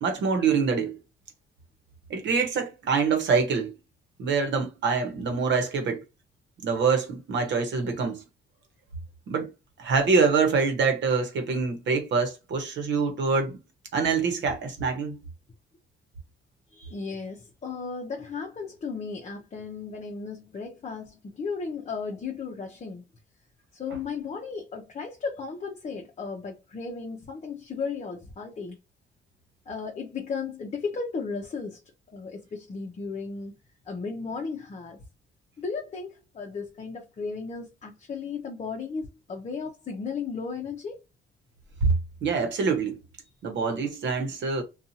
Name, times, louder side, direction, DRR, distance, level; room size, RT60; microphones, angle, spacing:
voice 1, 0.0-1.0 2.1-3.8 4.2-6.0 6.6-8.2 9.3-9.5 9.8-13.6 13.9-15.2 41.8-41.9 42.2-43.0 43.4-44.6, right 5 dB, 65° right, 1.0 m, -25 dB
voice 2, 16.7-23.0 23.7-28.8 29.7-31.8 32.1-33.5 33.9-35.0 35.6-41.0, left 5 dB, 35° left, 0.7 m, -35 dB
2.6 x 2.3 x 2.7 m
cardioid pair, 90°, 20 cm